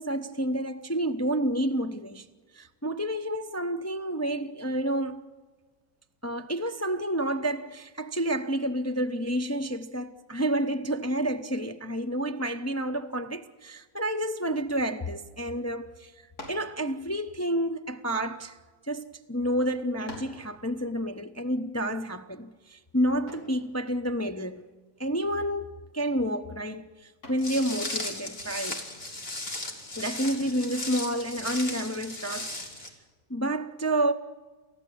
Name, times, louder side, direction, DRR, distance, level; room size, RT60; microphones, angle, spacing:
voice 1, 0.0-2.3 2.5-5.2 6.2-16.1 16.5-18.6 18.9-24.7 25.0-28.9 30.0-32.9 33.3-34.1, right 1 dB, 20° left, 0.4 m, -29 dB
sound 1, 16.3-16.8 17.7-18.9 19.5-19.6 20.1-20.5 23.3-23.6 25.5-25.9 26.3-26.6 27.2-27.6 30.2-30.7, left 1 dB, 85° left, 5.6 m, -45 dB
Walk footsteps, 27.4-32.9, left 2 dB, 40° left, 2.8 m, -36 dB
29.0 x 14.5 x 8.5 m
omnidirectional pair, 1.6 m